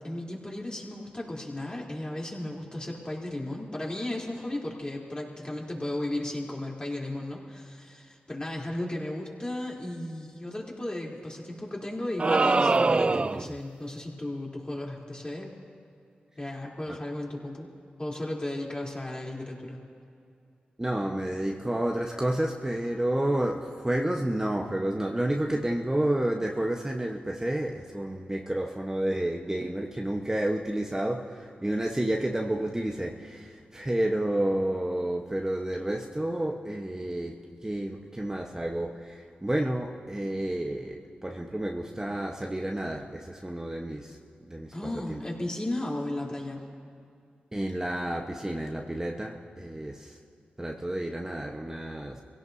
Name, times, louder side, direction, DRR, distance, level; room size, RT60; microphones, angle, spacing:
voice 1, 0.0-15.5 16.4-17.7 18.0-19.8 44.7-46.6, left 1 dB, 25° left, -3 dB, 3.5 m, -35 dB
sound 1, 12.2-13.6, right 3 dB, 35° right, 0.3 m, -23 dB
voice 2, 20.8-44.2 44.5-45.2 47.5-50.2 50.6-52.2, right 1 dB, 15° right, 0 dB, 1.1 m, -30 dB
24.5 x 17.0 x 2.8 m, 2.4 s
cardioid pair, 50°, 3 cm